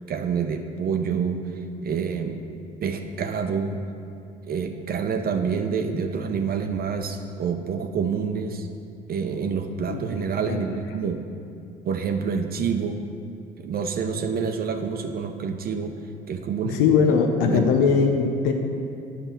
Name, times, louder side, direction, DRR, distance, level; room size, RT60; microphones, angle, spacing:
voice 1, 0.1-2.4 2.8-3.8 4.4-8.7 9.1-11.2 11.8-13.0 13.6-15.9 16.3-16.8 17.4-17.7, right 6 dB, 50° right, 5 dB, 0.7 m, -27 dB
voice 2, 16.7-18.5, left 6 dB, 75° left, 5 dB, 0.7 m, -20 dB
8.2 x 5.7 x 5.7 m, 2.5 s
hypercardioid pair, 60°, 20 cm